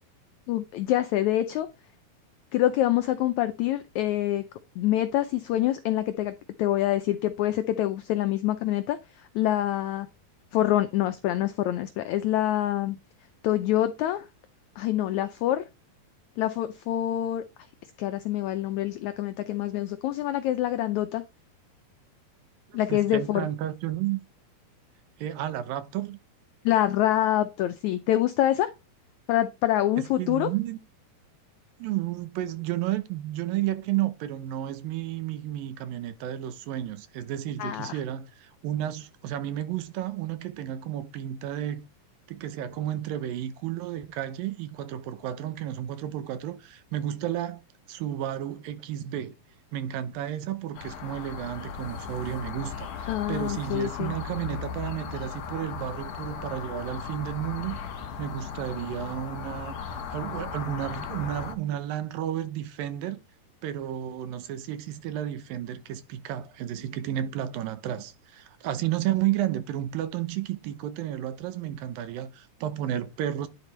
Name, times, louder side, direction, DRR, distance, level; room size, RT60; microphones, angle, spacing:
voice 1, 0.5-1.7 2.5-4.4 4.8-10.1 10.5-13.0 13.4-14.2 14.8-15.6 16.4-17.4 18.0-21.2 22.7-23.5 26.6-28.7 29.3-30.5 37.6-38.0 53.1-54.1, left 13 dB, 85° left, 1.6 m, -26 dB
voice 2, 22.7-24.2 25.2-26.2 30.2-30.8 31.8-41.8 42.3-47.6 47.9-49.4 49.7-57.8 58.2-63.2 63.6-73.5, right 12 dB, 80° right, 2.6 m, -32 dB
sound 1, 50.7-61.5, left 7 dB, 60° left, 2.0 m, -37 dB
10.5 x 4.9 x 3.3 m
omnidirectional pair, 4.1 m